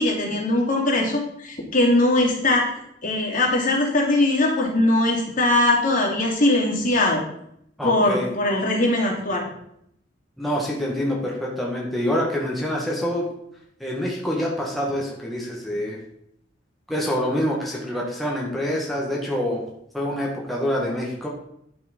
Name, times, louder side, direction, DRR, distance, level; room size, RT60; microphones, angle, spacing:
voice 1, 0.0-2.7 3.0-7.2 7.8-9.4, left 2 dB, 45° left, -2 dB, 2.9 m, -21 dB
voice 2, 7.8-8.3 10.4-13.3 13.8-16.0 16.9-19.7 19.9-21.3, equal, ahead, -4 dB, 1.7 m, -26 dB
11.0 x 6.2 x 5.4 m, 0.74 s
head